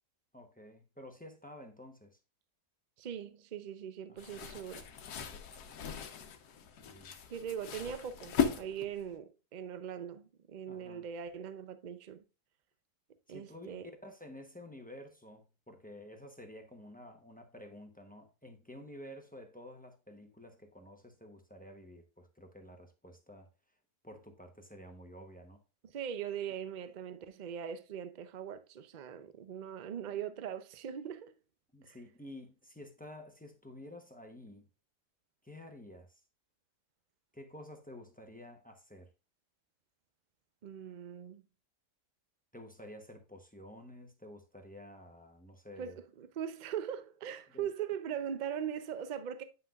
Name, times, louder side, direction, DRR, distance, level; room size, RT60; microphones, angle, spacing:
voice 1, 0.3-2.2 4.1-4.4 6.8-7.1 10.7-11.1 13.3-23.5 24.0-25.6 31.7-34.7 35.4-36.2 37.3-39.1 42.5-46.0 47.5-47.7, left 1 dB, 10° left, 0.5 m, -51 dB
voice 2, 3.0-4.9 7.3-12.2 13.3-13.9 25.8-31.3 31.8-32.0 40.6-41.4 45.8-49.4, right 8 dB, 75° right, 0.4 m, -41 dB
sound 1, 4.2-9.1, left 7 dB, 75° left, 1.3 m, -37 dB
9.1 x 5.8 x 2.4 m
omnidirectional pair, 1.7 m